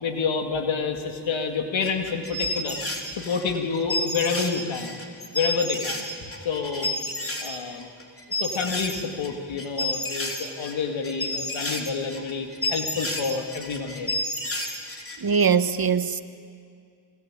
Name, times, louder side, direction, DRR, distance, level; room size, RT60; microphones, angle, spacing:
voice 1, 0.0-2.8 3.1-5.0 5.3-6.1 6.4-6.9 7.4-7.9 8.4-14.1, left 5 dB, 85° left, 4 dB, 2.4 m, -28 dB
sound 1, 1.8-7.6 7.8-9.3 9.6-15.5, left 1 dB, 30° left, 4.2 m, -31 dB
voice 2, 15.2-16.2, right 6 dB, 50° right, 11 dB, 1.5 m, -21 dB
27.0 x 22.5 x 9.0 m, 2.2 s
cardioid pair, 50°, 45 cm